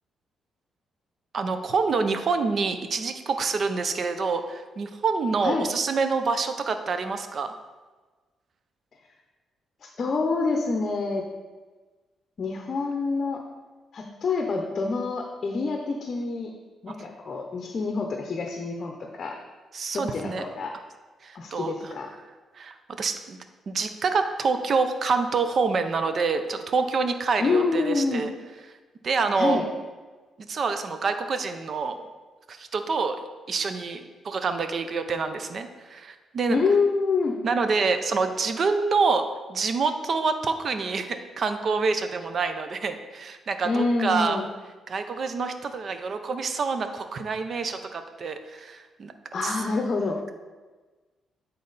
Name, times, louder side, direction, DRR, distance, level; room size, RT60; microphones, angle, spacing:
voice 1, 1.3-7.5 19.7-20.4 21.2-21.9 22.6-23.4 23.7-28.3 29.0-29.6 30.4-32.1 32.5-33.2 33.5-36.6 37.4-39.2 39.5-44.4 44.9-49.1 49.4-49.6, right 4 dB, 50° right, 8 dB, 0.6 m, -27 dB
voice 2, 9.8-11.3 12.4-13.4 13.9-16.5 16.8-19.3 19.9-20.7 21.3-22.1 27.4-28.2 29.4-29.7 36.5-37.3 43.6-44.5 49.3-50.2, left 4 dB, 45° left, 2 dB, 0.7 m, -26 dB
8.5 x 4.1 x 4.0 m, 1.3 s
cardioid pair, 100°, 0 cm